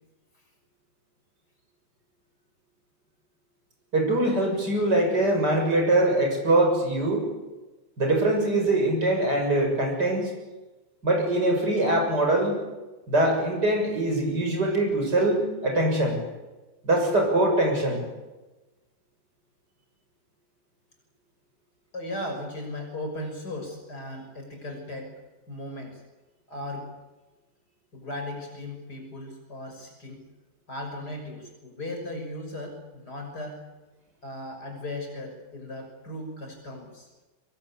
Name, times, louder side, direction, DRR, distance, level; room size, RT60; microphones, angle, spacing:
voice 1, 3.9-7.3 8.0-10.3 11.0-12.6 13.1-16.2 16.8-18.0, right 1 dB, 85° right, 2 dB, 7.5 m, -23 dB
voice 2, 21.9-25.1 25.5-26.0 26.5-26.9 27.9-30.2 30.7-33.6 34.2-37.1, left 1 dB, 75° left, 3 dB, 6.8 m, -37 dB
25.0 x 22.0 x 8.7 m, 1.1 s
omnidirectional pair, 1.8 m